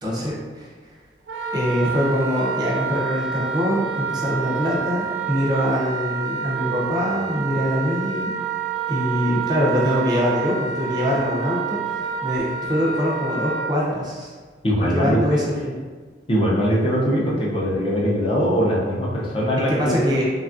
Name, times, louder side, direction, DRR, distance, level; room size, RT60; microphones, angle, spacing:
voice 1, 0.0-0.7 1.5-8.3 8.9-14.3 14.9-15.7 19.7-20.2, equal, 25° right, -5 dB, 0.5 m, -23 dB
Wind instrument woodwind instrument, 1.3-13.7, right 6 dB, 80° right, 0.4 m, -28 dB
voice 2, 14.6-15.4 16.3-20.1, equal, 30° left, -5 dB, 0.5 m, -21 dB
3.2 x 2.3 x 2.5 m, 1.5 s
head